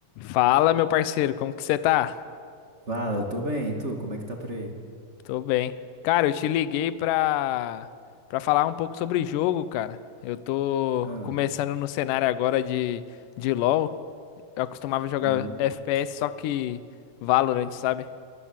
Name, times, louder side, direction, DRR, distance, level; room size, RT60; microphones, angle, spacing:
voice 1, 0.2-2.2 5.3-5.8 6.0-7.9 8.3-13.0 13.4-14.0 14.6-16.8 17.2-18.1, left 13 dB, 75° left, 14 dB, 2.1 m, -25 dB
voice 2, 2.9-4.7 11.0-11.4 15.2-15.6, equal, 25° right, 2 dB, 1.9 m, -31 dB
27.0 x 20.0 x 7.4 m, 2.2 s
omnidirectional pair, 4.3 m